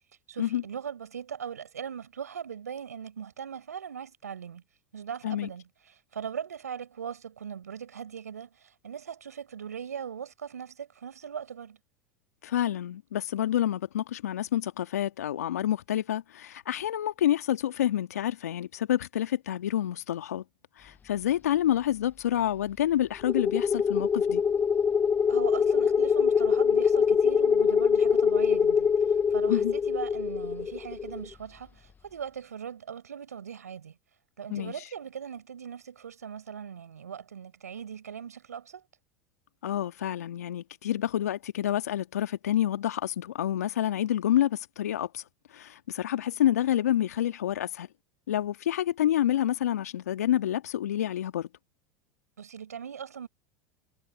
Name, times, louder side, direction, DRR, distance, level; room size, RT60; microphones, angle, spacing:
voice 1, 0.3-4.6 4.9-5.6 6.1-11.8 25.3-34.0 34.4-38.9 52.4-53.3, right 8 dB, 85° right, 7.0 m, -40 dB
voice 2, 12.4-20.4 20.8-24.4 29.5-29.7 34.5-34.7 39.6-45.2 45.5-47.9 48.3-51.5, left 11 dB, 80° left, 2.1 m, -28 dB
sound 1, 23.3-31.3, left 6 dB, 20° left, 0.5 m, -24 dB
hypercardioid pair, 85°, 8 cm